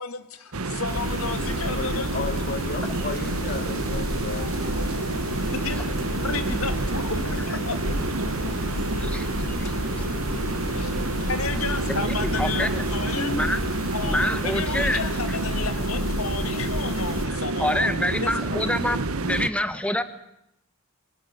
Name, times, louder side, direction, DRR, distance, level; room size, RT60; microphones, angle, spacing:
voice 1, 0.0-2.1 5.4-5.8 6.2-7.8 10.7-10.9 11.2-13.3 13.9-17.9 18.2-18.6, left 4 dB, 85° left, 10 dB, 2.2 m, -32 dB
sound 1, 0.5-19.5, right 3 dB, 80° right, 1.2 m, -29 dB
sound 2, 0.9-17.3, left 1 dB, 65° left, 2.0 m, -32 dB
voice 2, 1.7-4.9, left 4 dB, 45° left, 10 dB, 1.1 m, -34 dB
voice 3, 9.0-10.1 11.9-12.8 13.1-13.7 14.0-15.0 15.3-15.4 17.6-20.0, left 1 dB, 5° left, 11 dB, 1.2 m, -27 dB
24.0 x 19.0 x 8.4 m, 0.82 s
head